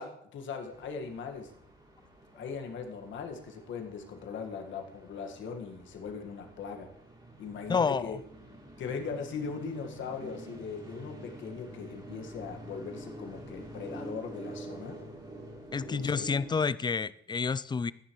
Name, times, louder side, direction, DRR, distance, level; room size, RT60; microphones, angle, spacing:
voice 1, 0.0-1.5 2.4-6.9 7.4-8.2 8.8-15.0 15.9-16.2, left 5 dB, 70° left, 3 dB, 1.8 m, -39 dB
sound 1, 0.7-16.5, right 1 dB, 20° right, 3.2 m, -47 dB
voice 2, 7.7-8.2 15.7-17.9, left 5 dB, 20° left, 17 dB, 0.4 m, -29 dB
13.5 x 10.0 x 3.2 m, 0.72 s
cardioid pair, 90°, 20 cm